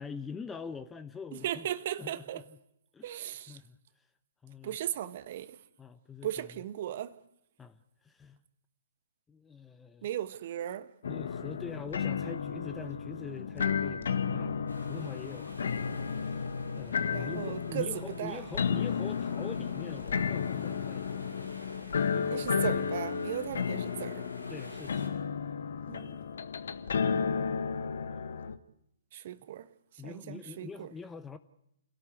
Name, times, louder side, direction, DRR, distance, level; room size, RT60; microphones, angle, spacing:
voice 1, 0.0-1.7 2.0-2.6 2.9-3.2 3.5-4.1 4.4-4.8 5.8-6.6 7.6-8.4 9.3-10.1 11.0-16.5 16.7-21.5 22.1-22.8 24.5-25.2 25.9-26.5 28.1-28.3 30.0-31.4, left 5 dB, 10° left, 1.0 m, -44 dB
voice 2, 1.4-2.4 3.0-3.6 4.6-5.6 6.2-7.2 10.0-10.9 17.1-18.4 22.3-24.3 25.9-26.1 29.1-29.7 30.0-30.9, right 11 dB, 45° right, 1.4 m, -37 dB
sound 1, 11.0-28.6, left 6 dB, 60° left, 1.5 m, -33 dB
sound 2, 14.7-25.1, left 1 dB, 90° left, 6.4 m, -50 dB
29.5 x 17.5 x 8.2 m
figure-of-eight pair, 125°, 0 cm